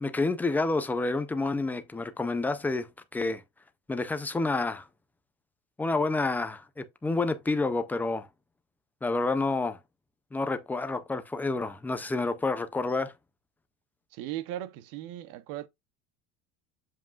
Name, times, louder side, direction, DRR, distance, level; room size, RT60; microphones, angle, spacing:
voice 1, 0.0-3.4 3.9-4.9 5.8-8.3 9.0-9.8 10.3-13.1, left 3 dB, 5° left, 0.3 m, -29 dB
voice 2, 14.1-15.7, right 13 dB, 65° right, 0.9 m, -37 dB
7.6 x 7.3 x 2.3 m
cardioid pair, 165°, 34 cm